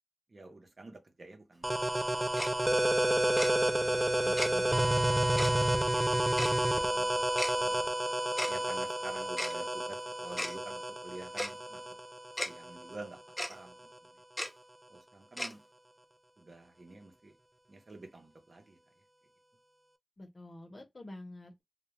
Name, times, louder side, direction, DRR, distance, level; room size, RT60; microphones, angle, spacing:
voice 1, 0.3-1.7 2.1-2.5 3.7-4.6 5.6-7.3 7.5-8.0 8.5-11.8 12.4-14.1 14.9-15.6 16.4-17.3 17.7-18.8, right 2 dB, 70° right, 0.7 m, -50 dB
sound 1, 1.6-13.0, right 1 dB, 25° right, 0.3 m, -30 dB
Tick-tock, 2.4-2.5 3.4-3.5 4.4-4.5 5.4-5.5 6.4-6.5 7.4-7.5 8.4-8.5 9.4-9.5 10.4-10.5 11.4-11.5 12.4-12.5 13.4-13.5 14.4-14.5 15.4-15.5, left 1 dB, 15° left, 0.6 m, -34 dB
voice 2, 4.2-4.9 20.2-21.6, left 1 dB, 60° left, 0.8 m, -48 dB
2.2 x 2.2 x 3.0 m
wide cardioid pair, 60°, 0 cm